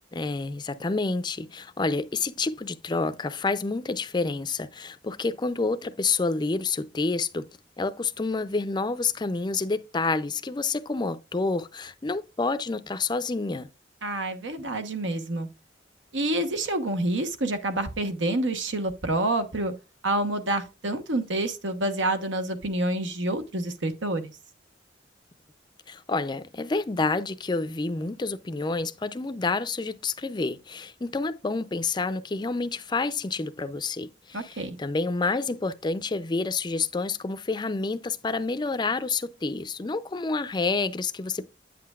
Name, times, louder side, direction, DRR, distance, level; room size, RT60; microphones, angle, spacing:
voice 1, 0.1-7.5 7.8-13.7 25.9-41.5, left 3 dB, 25° left, 0.4 m, -28 dB
voice 2, 14.0-15.5 16.1-19.7 20.0-24.3 34.3-34.8, right 1 dB, 80° right, 1.1 m, -28 dB
8.7 x 7.6 x 2.4 m
head